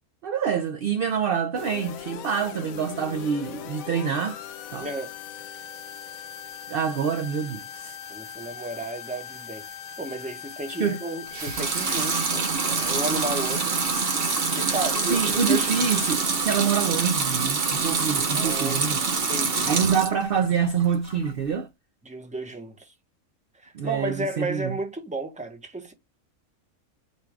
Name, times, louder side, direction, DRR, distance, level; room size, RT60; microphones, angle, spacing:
voice 1, 0.2-4.4 4.7-4.9 6.7-8.0 10.7-11.0 15.1-19.0 19.6-21.7 23.7-24.8, right 7 dB, 70° right, 0.5 m, -26 dB
sound 1, 1.6-16.1, left 9 dB, 80° left, 1.0 m, -40 dB
voice 2, 4.8-5.1 8.1-13.6 14.5-15.7 16.5-16.6 18.3-18.8 19.3-19.8 22.0-22.9 23.6-25.9, right 2 dB, 5° right, 0.7 m, -33 dB
Water tap faucet / Sink (filling or washing) / Liquid, 11.3-20.2 20.6-21.3, right 4 dB, 50° right, 0.9 m, -26 dB
4.5 x 2.4 x 4.6 m
omnidirectional pair, 1.5 m